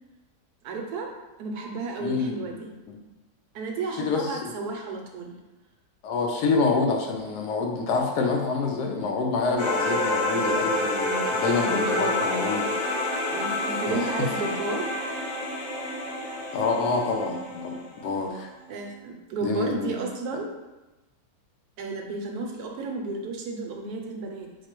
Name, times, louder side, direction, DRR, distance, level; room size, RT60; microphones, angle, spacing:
voice 1, 0.6-1.1 1.4-2.7 3.5-5.3 11.7-12.2 13.3-14.9 18.7-20.5 21.8-24.5, right 3 dB, 70° right, 1 dB, 1.1 m, -32 dB
voice 2, 2.0-2.3 2.9-3.0 4.0-4.3 6.0-12.6 13.9-14.0 16.5-17.7 18.0-18.5 19.4-20.0, left 4 dB, 75° left, 1 dB, 1.2 m, -26 dB
sound 1, 9.6-18.2, left 2 dB, 50° left, 0.7 m, -28 dB
4.9 x 2.1 x 4.4 m, 1.1 s
omnidirectional pair, 1.8 m